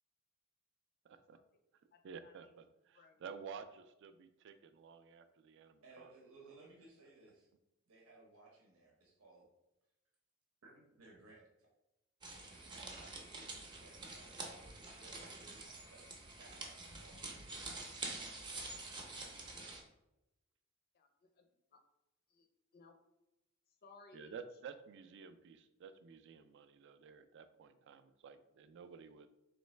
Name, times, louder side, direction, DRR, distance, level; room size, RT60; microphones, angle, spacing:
voice 1, 1.0-1.4 2.0-6.1 24.1-29.3, right 6 dB, 60° right, 10 dB, 0.3 m, -52 dB
voice 2, 1.9-2.5 2.9-3.2 3.7-3.8 20.9-21.8 22.3-22.5 22.7-23.0 23.8-24.4, left 3 dB, 45° left, 5 dB, 0.4 m, -62 dB
voice 3, 5.8-7.5 7.9-9.5 10.6-11.7 12.4-16.1 16.4-18.2, right 2 dB, 80° right, -2 dB, 0.9 m, -61 dB
sound 1, 12.2-19.8, right 2 dB, 20° right, 0.7 m, -47 dB
3.9 x 3.2 x 3.2 m, 0.93 s
head